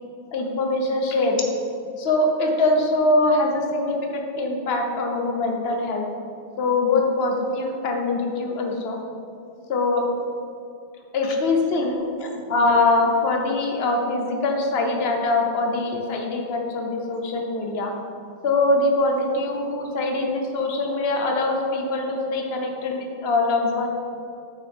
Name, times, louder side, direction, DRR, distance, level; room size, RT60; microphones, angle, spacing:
voice 1, 0.3-1.5 2.0-6.0 6.6-9.0 9.7-10.0 11.1-17.9 18.4-23.9, left 2 dB, 50° left, 2 dB, 0.8 m, -23 dB
9.2 x 6.1 x 3.6 m, 2.6 s
omnidirectional pair, 2.2 m